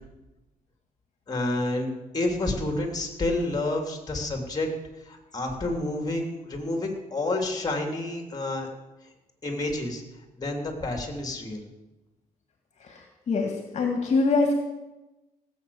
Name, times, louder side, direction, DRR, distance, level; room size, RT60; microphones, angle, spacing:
voice 1, 1.3-4.7 5.1-8.7 9.4-10.0 10.3-11.6, left 2 dB, 25° left, 3 dB, 3.1 m, -29 dB
voice 2, 12.8-14.5, left 3 dB, 50° left, 3 dB, 2.1 m, -25 dB
18.0 x 8.3 x 7.1 m, 1.0 s
cardioid pair, 110°, 15 cm